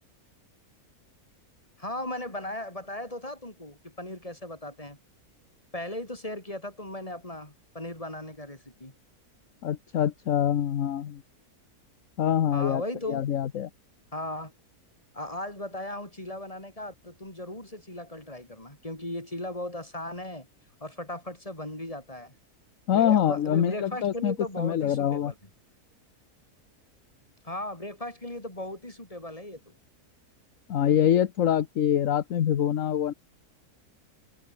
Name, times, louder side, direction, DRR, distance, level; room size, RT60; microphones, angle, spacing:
voice 1, 1.8-5.0 5.7-8.9 12.5-13.2 14.1-14.5 15.1-20.5 20.8-22.3 22.9-25.3 27.4-29.7, left 1 dB, 20° left, 5.2 m, -37 dB
voice 2, 9.6-11.2 12.2-13.7 22.9-25.3 30.7-33.1, left 10 dB, 60° left, 1.3 m, -25 dB
omnidirectional pair, 1.6 m